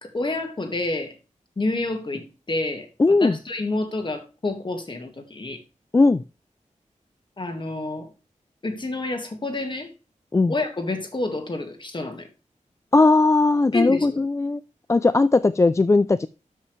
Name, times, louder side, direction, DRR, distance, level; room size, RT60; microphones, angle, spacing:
voice 1, 0.0-1.1 1.6-5.6 7.4-8.1 8.6-9.9 10.5-12.3 13.7-14.2, left 2 dB, 35° left, 6 dB, 1.8 m, -29 dB
voice 2, 3.0-3.4 5.9-6.2 10.3-10.5 12.9-14.6 14.9-16.3, left 3 dB, 20° left, 14 dB, 0.3 m, -18 dB
12.5 x 5.5 x 3.2 m, 0.31 s
wide cardioid pair, 120°, 13 cm